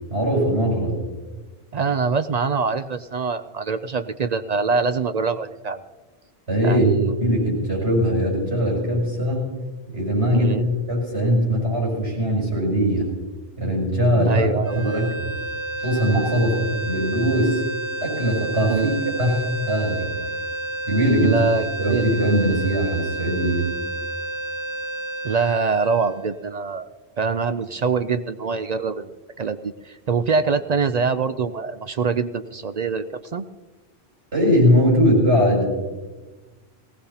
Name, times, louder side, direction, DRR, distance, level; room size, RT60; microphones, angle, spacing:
voice 1, 0.1-0.9 6.5-6.9 7.2-9.5 9.9-10.6 10.9-13.1 13.6-15.3 15.8-17.6 18.0-18.9 19.2-20.1 20.9-21.5 21.8-23.7 34.3-35.7, equal, 80° right, -2 dB, 6.7 m, -20 dB
voice 2, 1.7-5.8 6.6-7.2 10.3-10.6 14.2-14.8 18.7-18.9 21.2-22.1 25.2-26.9 27.2-29.1 29.4-33.0 33.3-33.5, right 5 dB, 55° right, 10 dB, 0.5 m, -24 dB
sound 1, 14.6-26.8, right 2 dB, 20° left, 2.5 m, -31 dB
19.5 x 17.5 x 2.8 m, 1.2 s
omnidirectional pair, 1.1 m